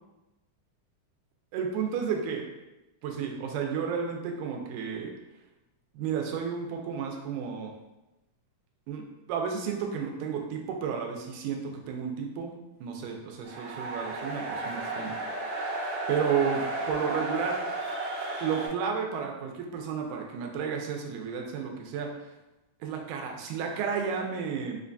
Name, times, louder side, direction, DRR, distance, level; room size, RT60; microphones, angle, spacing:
voice 1, 1.5-2.5 3.0-5.1 5.9-7.7 8.9-12.5 12.8-15.5 16.1-17.6 18.4-22.3 22.8-24.8, right 6 dB, 90° right, 2 dB, 2.1 m, -32 dB
sound 1, 13.4-18.7, right 2 dB, 75° right, 1.9 m, -33 dB
5.1 x 2.2 x 2.5 m, 0.98 s
omnidirectional pair, 3.5 m